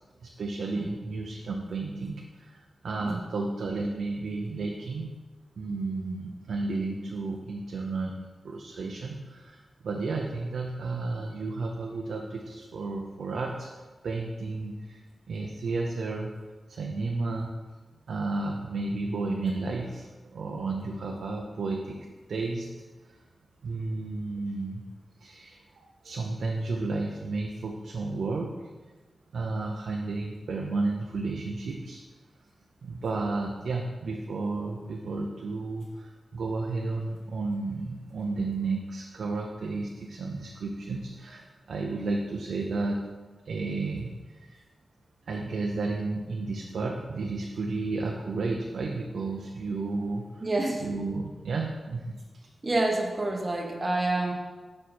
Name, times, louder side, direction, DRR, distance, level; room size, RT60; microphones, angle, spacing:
voice 1, 0.2-5.1 5.6-8.1 8.4-13.7 14.0-15.0 15.3-16.3 16.7-17.5 18.1-22.0 22.3-22.7 23.0-23.2 23.6-24.8 25.2-28.5 29.3-32.0 32.8-43.0 43.4-44.6 45.3-50.4 50.8-52.2, right 3 dB, 80° right, 0 dB, 0.6 m, -32 dB
voice 2, 50.4-50.9 52.6-54.3, right 2 dB, 30° right, 1 dB, 1.1 m, -28 dB
6.4 x 5.3 x 4.3 m, 1.3 s
wide cardioid pair, 95°, 0 cm